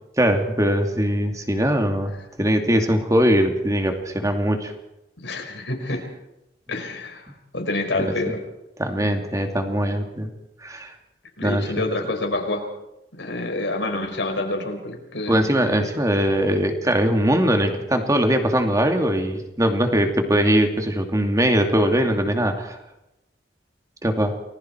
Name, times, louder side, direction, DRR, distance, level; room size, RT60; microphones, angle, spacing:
voice 1, 0.2-2.1 2.4-4.7 8.0-8.1 8.8-10.3 10.6-10.9 11.4-11.6 15.3-22.8 24.0-24.4, equal, 20° right, 4 dB, 2.6 m, -21 dB
voice 2, 5.2-6.1 6.7-7.3 7.5-8.4 11.4-12.7 13.1-15.4, left 2 dB, 85° left, 3 dB, 5.0 m, -27 dB
29.5 x 20.5 x 4.7 m, 0.89 s
head